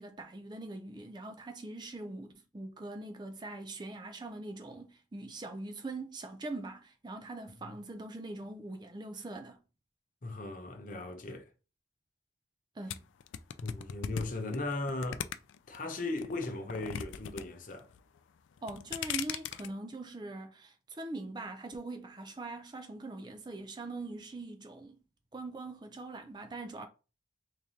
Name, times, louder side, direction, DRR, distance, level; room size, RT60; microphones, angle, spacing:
voice 1, 0.0-9.6 12.8-13.1 18.6-25.0 25.3-26.9, right 2 dB, 25° right, 0.4 m, -42 dB
voice 2, 10.2-11.5 13.6-15.3 15.7-17.9, left 2 dB, 45° left, 0.7 m, -37 dB
sound 1, 12.9-15.8 16.2-17.4 17.7-18.2 18.6-19.7, left 9 dB, 85° left, 0.3 m, -38 dB
3.7 x 3.3 x 2.8 m
head